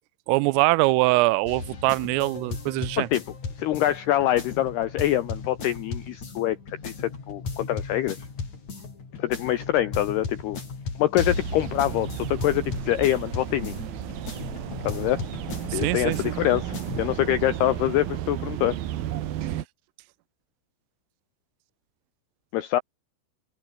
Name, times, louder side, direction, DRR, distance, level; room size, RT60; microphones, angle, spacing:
voice 1, 0.3-3.1 15.7-16.4, right 23 dB, 85° right, 3.2 m, -23 dB
sound 1, 1.5-17.0, left 4 dB, 35° left, 6.2 m, -36 dB
voice 2, 3.6-8.2 9.2-10.6 11.0-13.8 14.8-15.2 15.7-18.8 22.5-22.8, left 13 dB, 80° left, 2.3 m, -25 dB
sound 2, 11.2-19.6, right 12 dB, 65° right, 2.5 m, -33 dB
open air
omnidirectional pair, 5.9 m